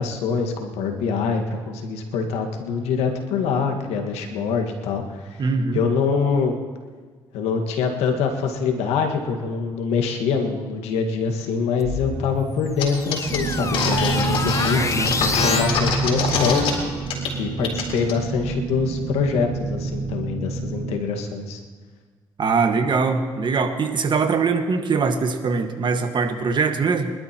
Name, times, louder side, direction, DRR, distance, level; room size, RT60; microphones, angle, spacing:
voice 1, 0.0-5.4 5.7-6.6 7.3-16.6 17.4-21.6, left 5 dB, 80° left, 3 dB, 1.7 m, -24 dB
voice 2, 5.4-5.8 14.7-15.2 22.4-27.1, right 4 dB, 45° right, 6 dB, 1.6 m, -22 dB
sound 1, 11.8-15.7, left 4 dB, 30° left, 0.8 m, -28 dB
sound 2, 12.8-12.9 13.1-16.7 17.1-17.3 17.6-18.1, left 4 dB, 65° left, 3.7 m, -24 dB
sound 3, 13.3-21.0, right 4 dB, 30° right, 1.2 m, -28 dB
24.5 x 12.5 x 3.0 m, 1.5 s
supercardioid pair, 65°, 11 cm